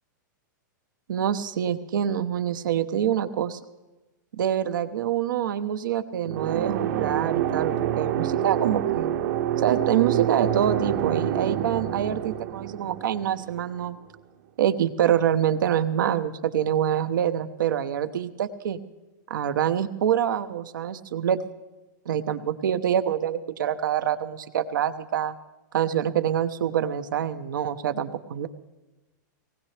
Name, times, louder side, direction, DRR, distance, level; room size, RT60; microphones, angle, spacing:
voice 1, 1.1-3.6 4.4-9.1 9.6-14.0 14.6-18.8 19.3-21.4 22.1-25.3 25.7-28.5, right 9 dB, 85° right, 10 dB, 0.9 m, -25 dB
sound 1, 6.2-13.9, right 11 dB, 55° right, 1.0 m, -27 dB
19.0 x 17.5 x 3.3 m, 1.1 s
supercardioid pair, 150°, 10 cm